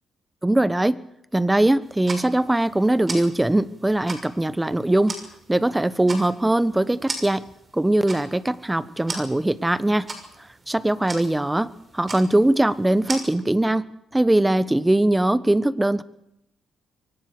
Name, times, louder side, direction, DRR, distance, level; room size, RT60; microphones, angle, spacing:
voice 1, 0.4-1.0 1.3-5.2 5.5-7.5 7.7-10.1 10.7-16.0, right 1 dB, 10° right, 17 dB, 1.2 m, -21 dB
sound 1, 1.8-13.2, right 3 dB, 35° right, 6.1 m, -39 dB
24.0 x 19.0 x 6.7 m, 0.78 s
cardioid pair, 90°, 0 cm